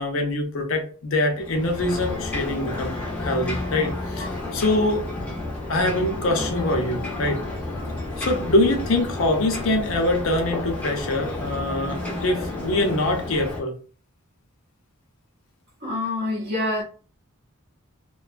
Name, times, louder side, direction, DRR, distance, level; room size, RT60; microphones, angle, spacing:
voice 1, 0.0-5.1 5.7-7.4 8.2-13.8, left 2 dB, 60° left, 0.6 m, -24 dB
Ocean, 1.3-13.6, left 2 dB, 5° left, 0.6 m, -31 dB
voice 2, 15.8-16.8, left 2 dB, 45° right, 0.6 m, -26 dB
2.5 x 2.2 x 2.4 m
head